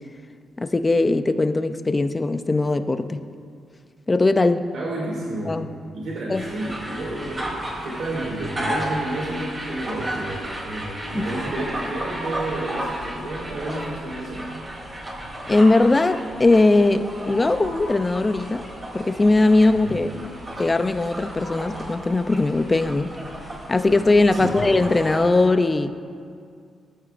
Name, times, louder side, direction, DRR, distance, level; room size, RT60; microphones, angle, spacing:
voice 1, 0.6-3.2 4.1-4.6 5.5-5.7 6.3-6.4 11.2-11.3 15.5-18.6 18.9-20.1 20.6-23.2 23.7-25.9, left 2 dB, 20° left, 10 dB, 0.5 m, -19 dB
voice 2, 4.7-5.6 5.9-7.5 7.8-14.5 19.7-20.0 24.3-24.6, right 1 dB, 70° right, -5 dB, 2.5 m, -31 dB
sound 1, 6.3-25.3, right 1 dB, 20° right, 2.9 m, -33 dB
18.5 x 14.5 x 2.5 m, 2.3 s
wide cardioid pair, 150°, 0 cm